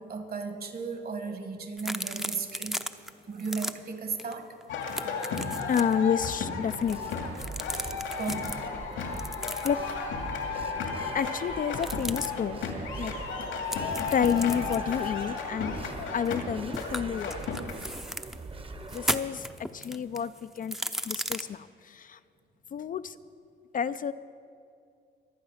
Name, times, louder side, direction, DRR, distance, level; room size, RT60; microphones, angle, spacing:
voice 1, 0.0-2.9 3.3-4.5 8.2-8.7 10.5-10.7, right 4 dB, 50° right, 7 dB, 1.8 m, -35 dB
sound 1, 1.8-3.1 3.4-3.7 4.2-4.3 4.6-5.9 6.7-8.6 9.1-9.9 11.7-12.3 13.7-16.4 16.7-18.4 18.8-21.4, equal, ahead, 0.7 m, -36 dB
sound 2, 4.7-17.7, left 5 dB, 90° left, 2.4 m, -34 dB
voice 2, 5.7-7.3 9.6-9.8 11.1-12.6 13.0-13.1 14.1-15.8 16.1-17.4 18.9-19.5 19.7-20.8 21.1-22.2 22.7-23.2 23.7-24.1, left 7 dB, 45° left, 13 dB, 0.4 m, -29 dB
sound 3, 6.8-19.1, right 3 dB, 25° right, 1.0 m, -42 dB
23.5 x 8.6 x 5.7 m, 2.3 s
cardioid pair, 90°, 20 cm